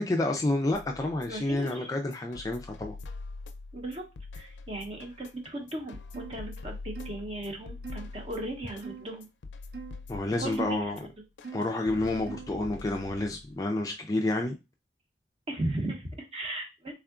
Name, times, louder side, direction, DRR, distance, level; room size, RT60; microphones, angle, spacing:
voice 1, 0.0-2.9 10.1-11.0 11.5-14.5, left 2 dB, 20° left, 0.3 m, -29 dB
sound 1, 0.7-13.7, left 3 dB, 90° left, 0.4 m, -44 dB
voice 2, 1.3-1.9 3.7-4.1 4.3-9.3 10.4-11.1 15.5-16.9, right 1 dB, 35° right, 0.8 m, -37 dB
sound 2, 6.1-6.4 7.0-7.2 7.8-8.1 8.8-9.1 9.7-10.0 10.6-10.8 11.4-11.7 12.3-12.6, right 5 dB, 60° right, 0.4 m, -42 dB
3.6 x 3.5 x 2.3 m
head